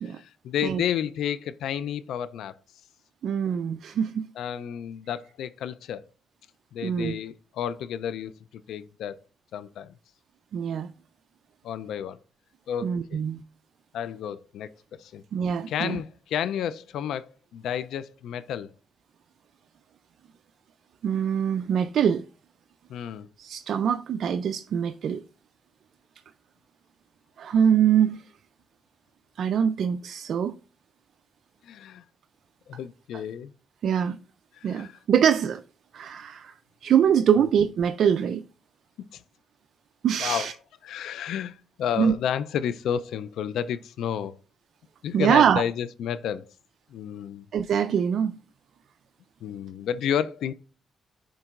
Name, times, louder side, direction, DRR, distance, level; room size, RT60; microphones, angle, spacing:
voice 1, 0.0-2.6 4.4-6.0 6.7-8.3 8.7-9.2 9.5-9.9 11.6-12.2 12.7-13.2 13.9-14.7 15.0-15.2 15.7-17.3 17.5-18.7 22.9-23.3 31.6-32.0 32.7-33.5 34.5-35.0 39.1-39.2 40.2-40.5 40.8-44.4 45.0-46.5 46.9-47.5 49.4-50.5, left 9 dB, 85° left, 0.4 m, -31 dB
voice 2, 3.2-4.3 6.8-7.1 10.5-10.9 12.8-13.4 15.3-16.0 21.0-22.2 23.4-25.2 27.4-28.2 29.4-30.5 33.8-34.2 34.6-35.6 35.9-36.5 36.8-38.4 40.0-40.5 42.0-42.1 45.1-45.6 47.5-48.3, right 8 dB, 70° right, 0.4 m, -23 dB
10.0 x 3.8 x 2.4 m
cardioid pair, 85°, 0 cm